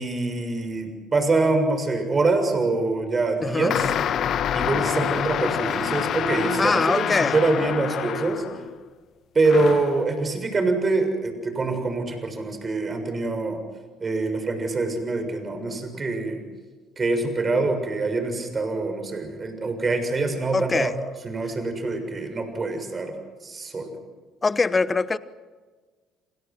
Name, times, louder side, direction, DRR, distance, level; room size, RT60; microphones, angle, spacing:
voice 1, 0.0-3.9 4.5-8.4 9.3-13.6 14.0-16.4 17.0-20.9 21.2-23.2 23.4-23.9, right 3 dB, 30° right, 6.8 m, -25 dB
voice 2, 3.4-3.8 6.6-7.3 20.5-20.9 24.4-25.2, left 4 dB, 25° left, 1.2 m, -23 dB
sound 1, 3.7-8.7 9.4-10.0, left 9 dB, 50° left, 1.2 m, -27 dB
29.0 x 27.5 x 6.2 m
figure-of-eight pair, 50°, 0 cm